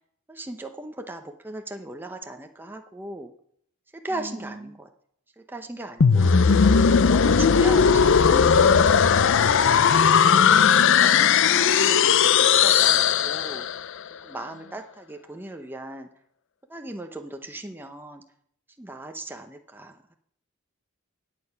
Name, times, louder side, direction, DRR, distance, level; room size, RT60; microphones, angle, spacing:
voice 1, 0.3-3.3 3.9-4.9 5.4-6.5 7.1-10.0 10.7-13.7 14.2-16.1 16.7-18.2 18.8-20.1, right 1 dB, 10° right, 5 dB, 0.7 m, -38 dB
voice 2, 4.1-4.8 6.1-6.4 14.4-14.7, right 2 dB, 70° right, 5 dB, 1.8 m, -44 dB
sound 1, 6.0-13.9, left 6 dB, 60° left, 0.5 m, -18 dB
12.5 x 8.8 x 5.6 m, 0.67 s
head